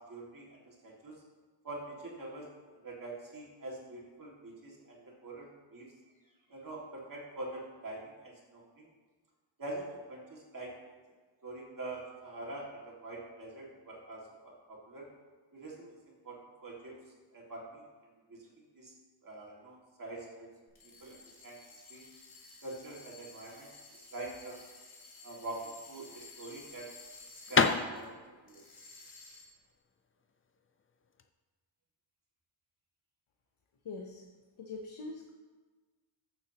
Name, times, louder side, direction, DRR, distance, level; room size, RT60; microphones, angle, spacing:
voice 1, 0.1-1.1 1.6-2.4 2.8-5.8 6.5-8.9 9.6-10.7 11.4-14.2 14.4-15.0 15.5-16.0 16.2-16.3 16.6-16.9 17.3-17.8 18.3-18.4 18.7-18.9 19.2-20.5 21.0-21.6 21.9-22.0 22.6-24.5 25.2-26.8 27.3-28.6, right 2 dB, 45° right, -4 dB, 2.1 m, -44 dB
sound 1, 20.7-28.1 28.5-29.7, left 3 dB, 50° left, 2.3 m, -54 dB
sound 2, 25.7-31.3, left 5 dB, 30° left, 0.4 m, -32 dB
voice 2, 33.8-34.3 34.6-35.3, left 3 dB, 85° left, 2 dB, 0.9 m, -43 dB
14.5 x 6.8 x 2.9 m, 1.4 s
wide cardioid pair, 155°, 47 cm